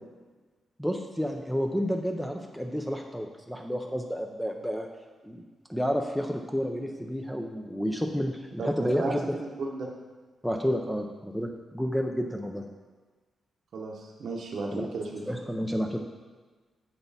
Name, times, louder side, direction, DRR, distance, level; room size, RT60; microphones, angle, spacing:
voice 1, 0.8-4.9 5.2-5.4 5.7-9.4 10.4-12.7 14.7-14.9 15.3-16.0, equal, ahead, 3 dB, 0.4 m, -30 dB
voice 2, 8.6-9.9 13.7-15.2, right 3 dB, 55° right, -2 dB, 0.8 m, -34 dB
7.9 x 5.9 x 4.1 m, 1.4 s
wide cardioid pair, 160°, 0 cm